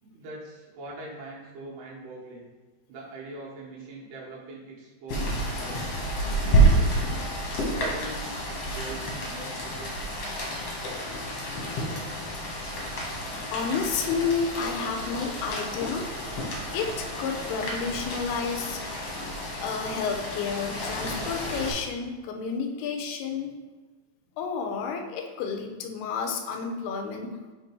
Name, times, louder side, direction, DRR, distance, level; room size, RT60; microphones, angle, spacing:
voice 1, 0.0-2.5 2.9-5.9 6.4-7.3 7.7-10.1, right 2 dB, 90° right, -4 dB, 3.4 m, -43 dB
Rain, 5.1-21.7, right 1 dB, 60° left, 1.7 m, -29 dB
voice 2, 13.5-16.3 16.7-18.8 19.6-23.5 24.4-27.4, left 5 dB, 80° left, 4 dB, 2.6 m, -31 dB
7.3 x 3.5 x 4.6 m, 1.3 s
omnidirectional pair, 4.6 m